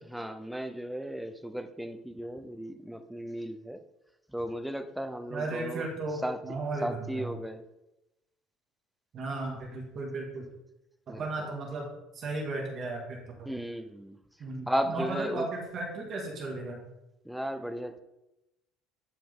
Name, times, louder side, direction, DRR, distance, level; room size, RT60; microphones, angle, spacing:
voice 1, 0.1-3.8 4.3-5.8 6.2-6.4 6.8-7.6 11.1-11.5 13.5-14.2 14.7-15.5 17.2-18.0, equal, ahead, 9 dB, 0.4 m, -35 dB
voice 2, 5.3-7.3 9.1-10.5 11.1-11.9 12.1-13.5 14.4-16.9, right 2 dB, 30° right, 0 dB, 1.9 m, -35 dB
11.5 x 4.9 x 3.6 m, 0.92 s
cardioid pair, 170°, 0 cm